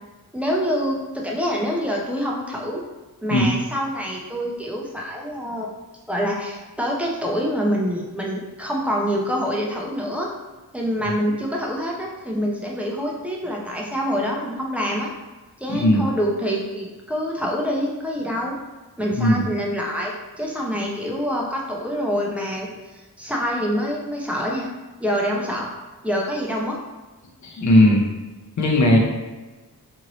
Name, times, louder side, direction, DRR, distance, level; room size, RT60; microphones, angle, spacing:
voice 1, 0.3-2.8 3.2-5.7 6.1-10.3 10.7-15.1 15.6-18.6 19.0-24.7 25.0-25.7 26.0-26.8, equal, 5° right, -3 dB, 0.4 m, -26 dB
voice 2, 15.7-16.0 19.2-19.4 27.4-28.1 28.6-29.0, left 1 dB, 50° left, -1 dB, 0.6 m, -17 dB
2.9 x 2.6 x 2.9 m, 1.2 s
wide cardioid pair, 175°, 37 cm